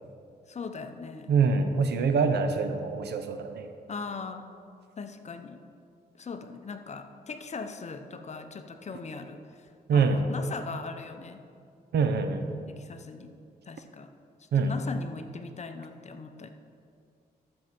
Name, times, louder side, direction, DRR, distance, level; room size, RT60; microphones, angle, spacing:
voice 1, 0.5-1.3 3.9-4.5 5.0-5.6 6.2-11.4 12.7-13.3 13.6-14.1 14.4-16.5, left 4 dB, 40° left, 8 dB, 0.7 m, -40 dB
voice 2, 1.3-3.7 9.9-10.2 11.9-12.5 14.5-14.7, right 5 dB, 85° right, 8 dB, 0.8 m, -25 dB
13.0 x 6.5 x 4.4 m, 2.4 s
cardioid pair, 80°, 17 cm